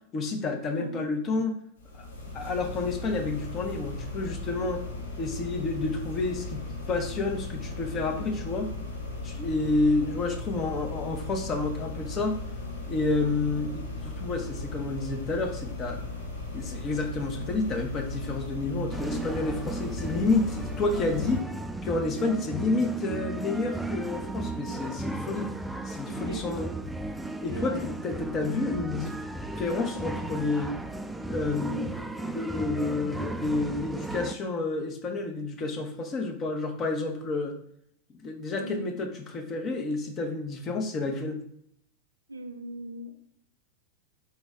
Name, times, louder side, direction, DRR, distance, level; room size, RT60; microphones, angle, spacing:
voice 1, 0.1-1.6 1.9-2.1 2.3-4.8 5.2-6.6 6.9-8.7 9.2-12.4 12.9-16.0 16.5-21.4 21.8-25.5 25.8-26.7 27.4-29.1 29.6-30.8 31.3-31.9 32.2-37.6 38.2-41.4, left 3 dB, 30° left, 5 dB, 0.8 m, -30 dB
sound 1, 1.8-21.4, left 3 dB, 65° left, 1.2 m, -37 dB
sound 2, 18.9-34.4, right 2 dB, 5° right, 0.3 m, -35 dB
voice 2, 26.2-26.6 27.5-27.9 38.6-38.8 42.3-43.2, right 1 dB, 80° right, 6 dB, 0.5 m, -40 dB
4.5 x 3.1 x 3.5 m, 0.70 s
figure-of-eight pair, 90°, 0 cm